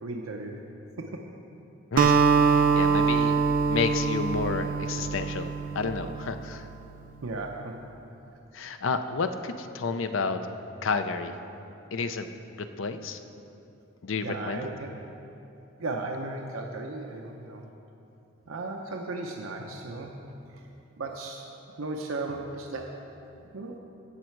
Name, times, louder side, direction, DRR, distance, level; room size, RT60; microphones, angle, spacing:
voice 1, 0.0-0.6 1.0-1.3 7.2-7.8 14.2-15.0 15.8-17.7 18.5-20.2 20.5-20.6 21.0-21.5 21.8-23.1 23.4-23.8, right 2 dB, 80° right, 1 dB, 0.7 m, -36 dB
voice 2, 1.9-6.7 8.5-10.5 10.8-11.3 11.9-12.3 12.6-13.2 14.0-14.6, left 4 dB, 65° left, 9 dB, 0.6 m, -31 dB
Acoustic guitar, 2.0-6.4, right 5 dB, 45° right, 0.4 m, -24 dB
15.5 x 6.4 x 4.6 m, 2.8 s
head